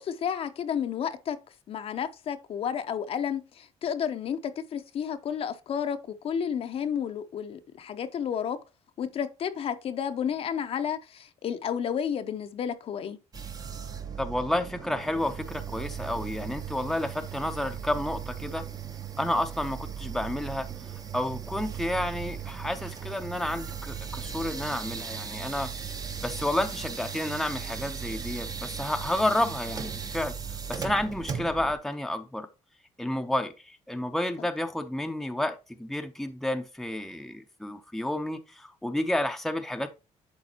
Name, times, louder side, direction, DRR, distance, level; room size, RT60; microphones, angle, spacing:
voice 1, 0.0-1.4 1.7-8.6 9.0-13.2 34.4-34.5, left 8 dB, 55° left, 0.7 m, -31 dB
sound 1, 13.3-31.8, right 7 dB, 30° right, 0.8 m, -37 dB
voice 2, 14.2-18.6 19.2-20.7 21.1-25.7 26.2-30.3 30.7-32.5 33.0-39.9, left 1 dB, ahead, 0.7 m, -30 dB
10.5 x 4.0 x 2.8 m
cardioid pair, 110°, 12 cm